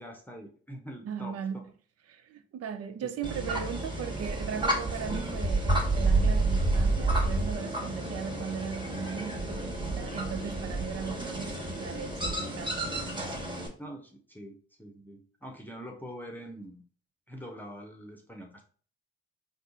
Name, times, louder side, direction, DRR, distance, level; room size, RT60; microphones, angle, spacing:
voice 1, 0.0-1.4 3.0-3.1 13.8-16.8 17.3-18.6, equal, 5° left, 0.8 m, -44 dB
voice 2, 1.0-1.6 2.1-12.9 13.2-13.3, right 7 dB, 55° right, 0.5 m, -38 dB
sound 1, 3.2-13.7, right 2 dB, 15° right, 1.3 m, -30 dB
3.6 x 2.0 x 3.8 m
hypercardioid pair, 45°, 30 cm